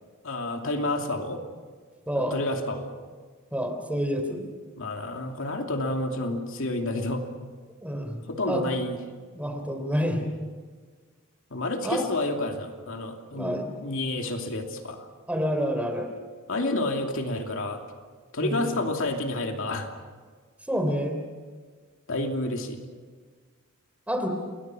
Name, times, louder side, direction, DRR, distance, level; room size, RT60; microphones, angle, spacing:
voice 1, 0.2-1.4 2.1-2.9 4.8-7.2 8.3-9.0 11.5-15.1 16.5-17.8 18.3-19.9 22.1-22.8, left 2 dB, 70° left, 3 dB, 2.7 m, -29 dB
voice 2, 2.1-2.4 3.5-4.5 7.8-8.6 9.3-10.3 11.8-12.0 13.3-13.7 15.3-16.1 18.4-18.8 20.7-21.2 24.1-24.3, equal, 5° right, 5 dB, 3.4 m, -28 dB
29.0 x 22.5 x 6.2 m, 1.5 s
head